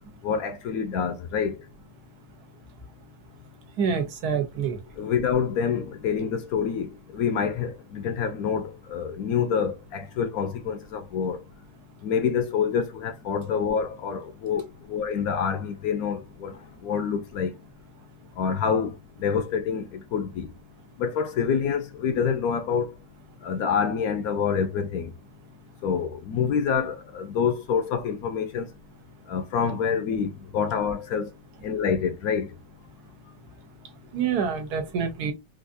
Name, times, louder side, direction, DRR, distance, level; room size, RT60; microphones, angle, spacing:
voice 1, 0.2-1.6 5.0-11.4 12.0-17.5 18.4-18.9 19.2-20.5 21.0-22.9 23.4-25.1 25.8-28.7 29.3-31.3 31.6-32.5, left 6 dB, 70° left, 0.9 m, -27 dB
voice 2, 3.8-4.8 34.1-35.3, right 6 dB, 70° right, 1.4 m, -26 dB
3.8 x 2.6 x 2.5 m
omnidirectional pair, 1.8 m